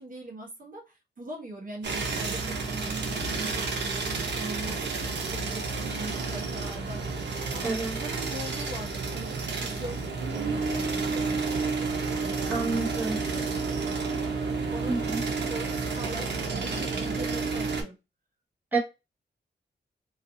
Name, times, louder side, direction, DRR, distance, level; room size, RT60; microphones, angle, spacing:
voice 1, 0.0-13.9 14.3-18.0, right 1 dB, 50° right, 1.0 m, -42 dB
sound 1, 1.8-17.8, right 4 dB, 75° right, 0.7 m, -30 dB
voice 2, 7.6-8.0 12.5-13.2 14.9-15.2 18.7-18.8, right 3 dB, 10° right, 0.9 m, -28 dB
2.4 x 2.4 x 2.6 m
wide cardioid pair, 115°, 18 cm